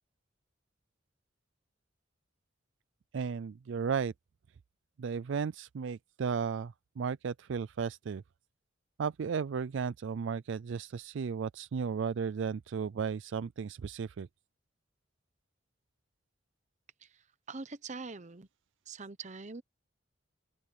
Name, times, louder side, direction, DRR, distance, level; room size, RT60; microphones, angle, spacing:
voice 1, 3.1-4.1 5.0-8.2 9.0-14.3, right 6 dB, 65° right, 0.4 m, -34 dB
voice 2, 17.0-18.5 18.9-19.6, right 4 dB, 35° right, 0.9 m, -44 dB
open air
head